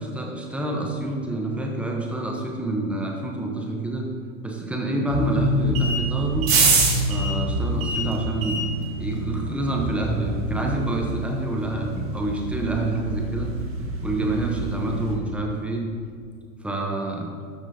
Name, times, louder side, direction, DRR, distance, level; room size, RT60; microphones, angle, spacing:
voice 1, 0.0-4.1 4.4-6.5 7.1-8.6 9.0-13.5 14.0-15.8 16.6-17.3, right 2 dB, 5° right, 0 dB, 0.9 m, -27 dB
sound 1, 5.1-15.1, right 2 dB, 30° right, 1.7 m, -26 dB
12.0 x 5.9 x 2.9 m, 2.1 s
hypercardioid pair, 120°, 42 cm